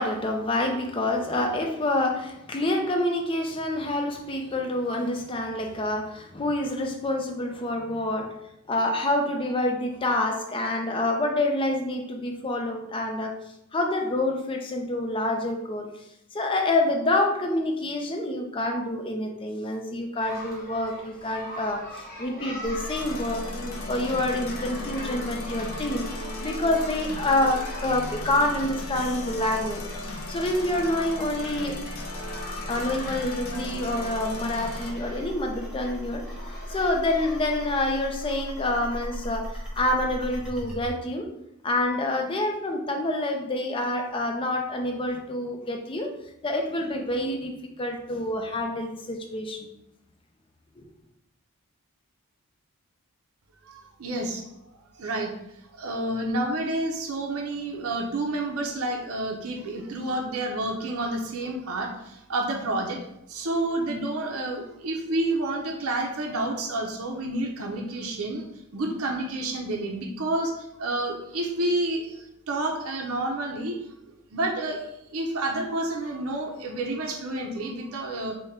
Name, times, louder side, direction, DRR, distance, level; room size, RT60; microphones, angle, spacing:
voice 1, 0.0-13.3 13.7-15.9 16.3-26.1 26.4-31.8 32.7-41.3 41.6-47.5 47.8-49.7 50.8-50.9, left 1 dB, 25° left, 3 dB, 0.4 m, -27 dB
sound 1, 20.2-37.4, left 1 dB, 40° left, 0.8 m, -42 dB
sound 2, 22.6-40.9, equal, 5° right, 0.8 m, -38 dB
sound 3, 22.9-34.9, left 3 dB, 70° left, 0.5 m, -38 dB
voice 2, 53.7-54.4 54.9-55.3 55.8-63.0 63.3-68.5 68.7-73.7 74.3-78.4, right 2 dB, 80° right, 1 dB, 0.6 m, -29 dB
3.6 x 2.1 x 4.1 m, 0.82 s
head